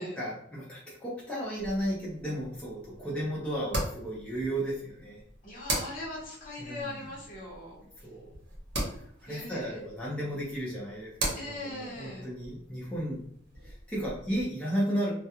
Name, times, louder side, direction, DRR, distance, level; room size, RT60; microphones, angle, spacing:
voice 1, 0.0-5.2 6.6-7.1 8.0-8.3 8.9-13.2 13.6-15.1, equal, 5° left, -7 dB, 0.6 m, -34 dB
sound 1, 1.6-14.4, right 1 dB, 65° right, 0.9 m, -40 dB
voice 2, 5.4-7.8 9.3-9.8 11.3-12.3, left 1 dB, 45° left, -3 dB, 0.9 m, -40 dB
2.3 x 2.1 x 2.8 m, 0.67 s
head